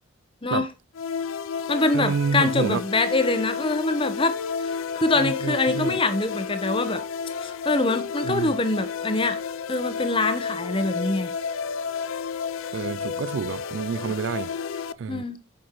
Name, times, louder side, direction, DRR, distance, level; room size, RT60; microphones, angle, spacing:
voice 1, 0.4-0.7 1.7-4.3 4.6-7.0 7.4-9.4 9.7-11.3 15.1-15.4, left 2 dB, 25° left, 0.9 m, -24 dB
sound 1, 0.9-14.9, left 6 dB, 75° left, 0.4 m, -31 dB
voice 2, 1.9-2.8 5.2-6.0 8.3-8.5 12.7-14.5 15.0-15.2, right 5 dB, 60° right, 0.3 m, -28 dB
8.7 x 6.1 x 3.1 m
head